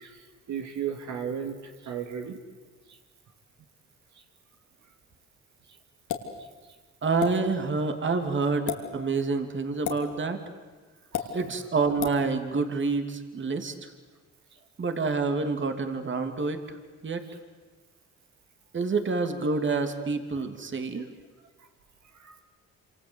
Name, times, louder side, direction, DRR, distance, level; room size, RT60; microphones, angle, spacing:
voice 1, 0.0-2.4 11.1-11.4 22.1-22.4, right 8 dB, 65° right, 4 dB, 2.5 m, -35 dB
sound 1, 6.1-6.3 7.2-7.3 8.6-8.8 9.8-10.0 11.1-11.3 12.0-12.2, left 10 dB, 75° left, 3.2 m, -30 dB
voice 2, 7.0-10.4 11.3-13.9 14.8-16.8 17.0-17.2 18.7-21.1, right 4 dB, 40° right, 7 dB, 2.9 m, -28 dB
27.0 x 26.5 x 8.2 m, 1.3 s
cardioid pair, 90°, 30 cm